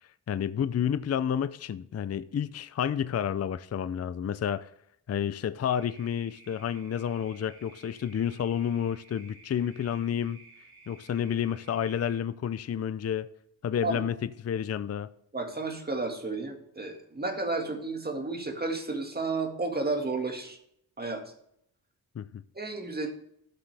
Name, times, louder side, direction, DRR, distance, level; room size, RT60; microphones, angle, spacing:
voice 1, 0.3-4.7 5.1-10.4 10.9-13.3 13.6-14.1 14.4-15.1 22.2-22.4, left 8 dB, 40° left, 0.5 m, -30 dB
sound 1, 5.7-12.2, right 3 dB, 60° right, 3.8 m, -54 dB
voice 2, 15.3-20.6 21.0-21.3 22.5-23.1, right 3 dB, 25° right, 1.9 m, -32 dB
13.0 x 7.4 x 3.4 m
wide cardioid pair, 110°, 40 cm